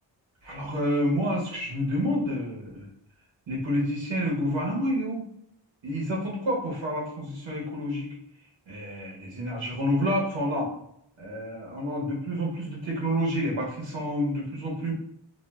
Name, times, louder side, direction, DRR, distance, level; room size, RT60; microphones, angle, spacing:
voice 1, 0.4-2.8 3.5-5.2 5.8-8.1 8.7-10.7 11.2-14.9, equal, 80° right, -3 dB, 0.8 m, -29 dB
3.0 x 2.3 x 2.2 m, 0.72 s
wide cardioid pair, 110°, 45 cm